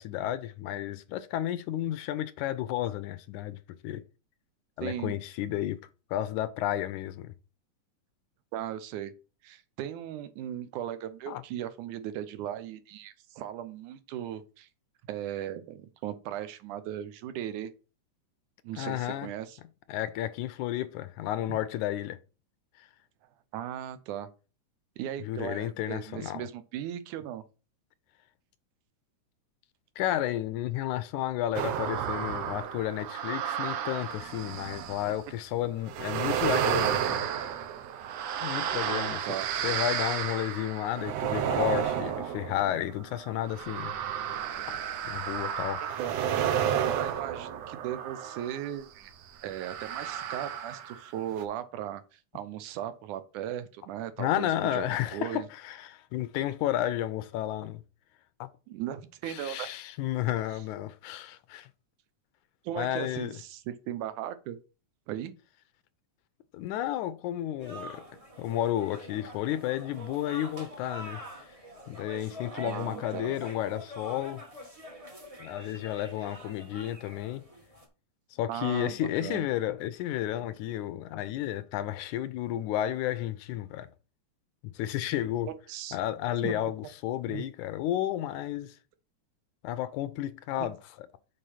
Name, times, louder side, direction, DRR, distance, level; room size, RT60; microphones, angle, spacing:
voice 1, 0.0-3.6 3.8-4.0 4.8-7.3 11.3-11.4 18.8-19.3 19.9-22.2 25.2-26.4 30.0-37.3 38.4-39.2 39.6-43.9 45.1-45.8 54.2-57.8 58.4-58.5 59.3-61.7 62.8-63.3 66.5-68.0 68.4-71.2 71.9-74.4 75.4-77.5 78.4-83.9 84.6-85.5 85.9-88.8 89.6-91.1, left 12 dB, 80° left, 2.1 m, -32 dB
voice 2, 4.8-5.1 8.5-9.1 9.4-14.7 15.1-17.7 18.6-19.6 21.5-21.6 23.5-24.3 25.0-27.4 38.8-39.5 46.0-49.1 49.4-54.9 55.1-55.5 58.7-59.7 62.6-64.6 65.1-65.4 72.5-73.4 78.5-79.5 85.7-86.0 86.4-86.6 87.3-87.5 90.6-90.7, right 11 dB, 85° right, 2.3 m, -37 dB
sound 1, 31.5-35.2 35.9-48.7 49.5-51.1 51.4-51.5, right 9 dB, 70° right, 1.9 m, -32 dB
sound 2, 67.6-77.9, equal, 25° right, 0.8 m, -45 dB
6.6 x 4.9 x 5.6 m
omnidirectional pair, 3.4 m